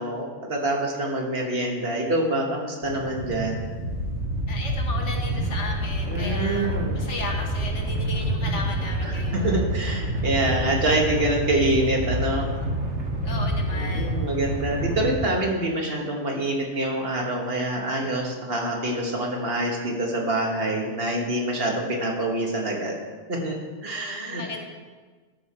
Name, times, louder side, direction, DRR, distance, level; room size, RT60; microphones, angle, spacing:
voice 1, 0.0-3.7 6.1-7.0 9.0-12.5 13.8-23.0 23.3-23.6 23.8-24.6, right 1 dB, 55° right, 0 dB, 1.6 m, -26 dB
sound 1, 2.8-15.1, right 1 dB, 70° right, 1.7 m, -27 dB
voice 2, 4.5-9.6 13.2-14.2 23.9-24.6, left 3 dB, 80° left, 1 dB, 1.7 m, -35 dB
13.5 x 5.6 x 4.3 m, 1.4 s
omnidirectional pair, 1.2 m